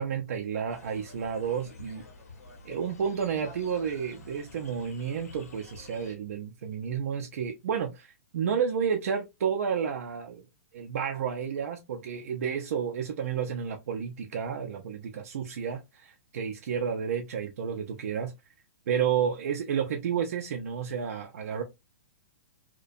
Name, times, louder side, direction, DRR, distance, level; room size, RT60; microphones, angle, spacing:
voice 1, 0.0-2.0 2.6-10.4 10.7-18.3 18.9-21.6, right 7 dB, 70° right, 0.4 m, -31 dB
sound 1, 0.7-6.1, left 3 dB, 90° left, 0.8 m, -50 dB
2.5 x 2.1 x 2.5 m
hypercardioid pair, 150°, 8 cm